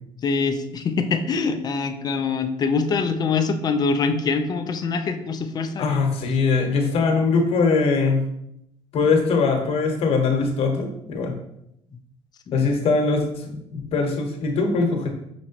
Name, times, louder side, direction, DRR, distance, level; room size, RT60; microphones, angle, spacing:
voice 1, 0.2-6.2 12.5-12.7, left 4 dB, 35° left, 7 dB, 0.5 m, -24 dB
voice 2, 5.8-8.2 8.9-11.3 12.5-15.1, left 4 dB, 55° left, 3 dB, 1.0 m, -21 dB
5.9 x 3.0 x 2.8 m, 0.77 s
cardioid pair, 115°, 12 cm